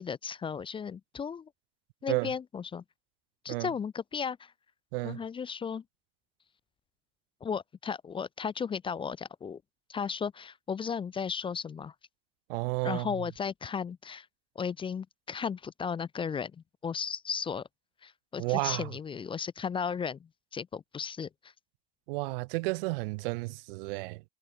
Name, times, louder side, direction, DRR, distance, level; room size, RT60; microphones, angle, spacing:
voice 1, 0.0-1.5 2.0-2.8 3.4-4.5 5.0-5.8 7.4-9.6 9.9-11.9 12.8-14.3 14.6-16.5 16.8-17.7 18.0-21.3, left 6 dB, 20° left, 0.4 m, -35 dB
voice 2, 4.9-5.2 12.5-13.1 18.4-18.9 22.1-24.2, right 24 dB, 70° right, 0.5 m, -32 dB
hypercardioid pair, 100°, 29 cm